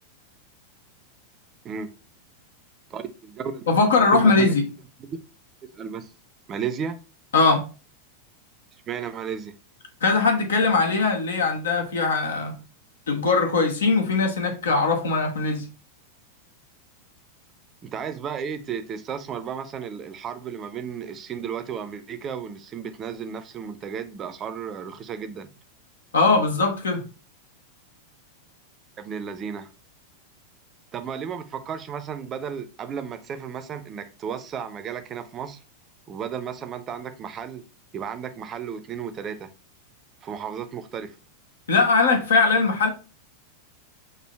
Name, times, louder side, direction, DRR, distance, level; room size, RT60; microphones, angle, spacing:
voice 1, 2.9-4.5 5.0-5.2 5.6-6.1 6.5-7.0 8.9-9.5 17.8-25.5 29.0-29.7 30.9-35.6 36.1-37.6 37.9-39.5 40.2-41.1, right 7 dB, 30° right, 0.6 m, -33 dB
voice 2, 3.7-4.6 7.3-7.7 10.0-12.6 13.1-15.7 26.1-27.0 41.7-42.9, left 4 dB, 65° left, 1.0 m, -20 dB
6.1 x 2.7 x 3.2 m
figure-of-eight pair, 90°, 0 cm